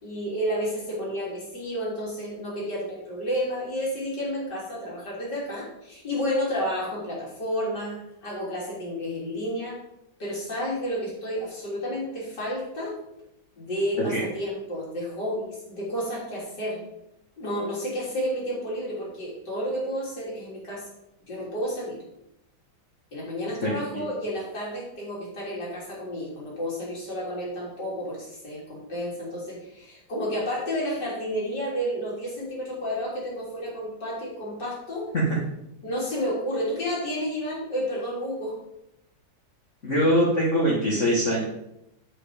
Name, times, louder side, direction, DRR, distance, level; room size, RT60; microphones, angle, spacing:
voice 1, 0.0-9.8 10.2-12.9 13.6-16.8 17.4-20.9 21.3-22.0 23.1-35.1 35.8-38.5, equal, 60° left, -5 dB, 3.9 m, -31 dB
voice 2, 23.6-24.0 35.1-35.4 39.8-41.4, equal, 40° left, -5 dB, 1.9 m, -23 dB
8.0 x 7.8 x 5.0 m, 0.84 s
omnidirectional pair, 2.0 m